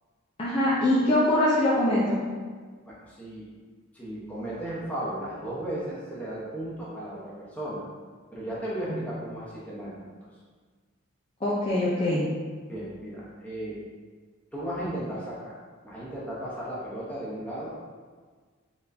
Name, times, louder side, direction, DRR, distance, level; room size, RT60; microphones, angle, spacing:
voice 1, 0.4-2.2 8.9-9.0 11.4-12.2, left 1 dB, 25° left, -9 dB, 0.6 m, -23 dB
voice 2, 2.9-3.4 3.9-7.8 8.3-10.1 12.7-13.8 14.5-15.5 15.8-17.8, right 1 dB, 5° left, -8 dB, 1.0 m, -35 dB
4.4 x 3.9 x 2.7 m, 1.5 s
head